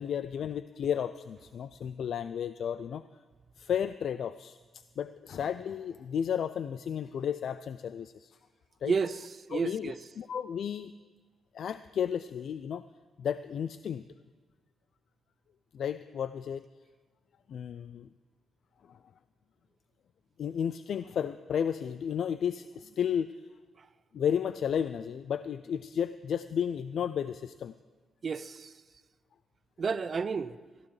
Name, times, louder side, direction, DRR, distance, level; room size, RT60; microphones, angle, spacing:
voice 1, 0.0-3.0 3.6-8.4 8.8-8.9 9.5-10.9 11.5-12.8 13.2-14.0 15.7-16.6 17.5-18.1 18.9-19.0 20.4-23.3 24.1-27.7, left 8 dB, 65° left, 0.3 m, -33 dB
voice 2, 8.8-9.2 9.5-10.0 28.2-28.7 29.8-30.6, right 5 dB, 45° right, 0.5 m, -31 dB
19.0 x 14.5 x 3.2 m
cardioid pair, 70°, 0 cm